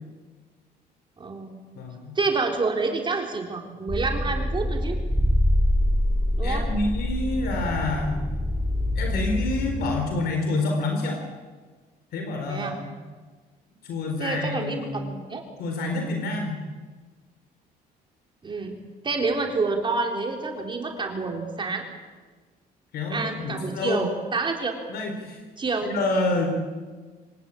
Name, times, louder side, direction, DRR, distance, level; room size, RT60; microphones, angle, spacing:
voice 1, 1.2-1.6 2.2-5.0 6.4-6.7 12.5-12.8 14.2-15.4 18.4-21.9 23.1-24.8 25.6-25.9, right 3 dB, 30° right, 2 dB, 3.8 m, -28 dB
voice 2, 1.7-2.1 6.4-8.2 9.0-11.2 12.1-12.9 13.8-15.0 15.6-16.6 22.9-24.1 24.9-25.4 25.8-26.6, left 2 dB, 70° left, 3 dB, 4.3 m, -28 dB
sound 1, 3.9-10.0, left 1 dB, 5° left, 2.6 m, -25 dB
25.5 x 19.0 x 8.7 m, 1.4 s
cardioid pair, 110°, 17 cm